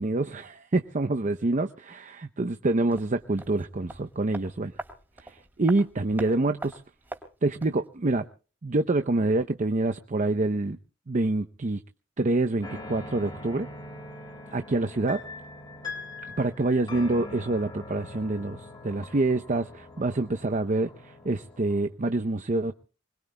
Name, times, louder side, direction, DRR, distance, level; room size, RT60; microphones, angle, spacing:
voice 1, 0.0-4.7 5.2-6.8 7.4-8.2 8.6-10.8 11.1-11.8 12.2-13.7 14.5-15.2 16.4-22.7, right 2 dB, 40° right, 9 dB, 0.6 m, -26 dB
sound 1, 2.9-7.9 8.1-8.2, right 1 dB, 10° right, 3.3 m, -43 dB
sound 2, 12.6-21.8, left 2 dB, 25° left, 3.5 m, -42 dB
25.0 x 21.0 x 2.2 m, 0.37 s
head